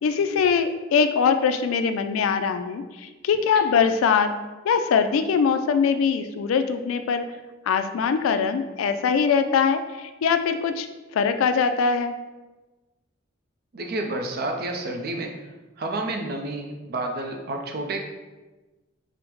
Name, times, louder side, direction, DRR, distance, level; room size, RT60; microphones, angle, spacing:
voice 1, 0.0-4.3 4.6-7.2 7.7-10.9 11.1-12.1, left 6 dB, 85° left, 9 dB, 0.3 m, -22 dB
voice 2, 13.7-15.3 15.8-18.0, right 2 dB, 50° right, 3 dB, 0.5 m, -30 dB
4.9 x 2.0 x 3.0 m, 1.2 s
head